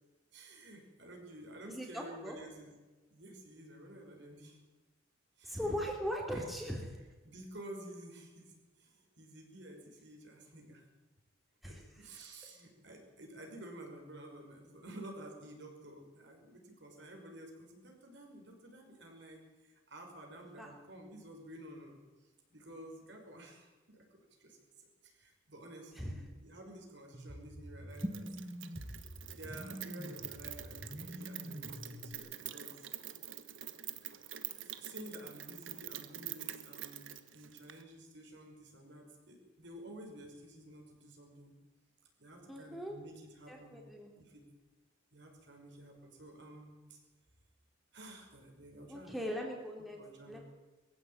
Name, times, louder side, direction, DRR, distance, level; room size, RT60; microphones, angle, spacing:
voice 1, 0.3-2.7 3.1-4.6 5.4-5.9 6.3-6.4 7.2-10.8 11.6-22.0 22.5-28.3 29.3-32.9 34.6-41.6 42.2-43.8 44.2-44.4 45.1-47.0 47.9-49.3 50.0-50.4, right 1 dB, 60° right, 1 dB, 5.8 m, -52 dB
voice 2, 1.7-2.4 5.4-6.9 11.6-11.8 20.6-20.7 25.9-26.1 42.5-43.0 43.5-44.1 48.9-50.0 50.3-50.4, equal, ahead, 0 dB, 3.2 m, -39 dB
sound 1, 27.1-32.1, equal, 15° right, 1.7 m, -45 dB
Rain, 27.9-37.8, right 12 dB, 75° right, 1.5 m, -46 dB
22.0 x 15.5 x 9.0 m, 1.2 s
head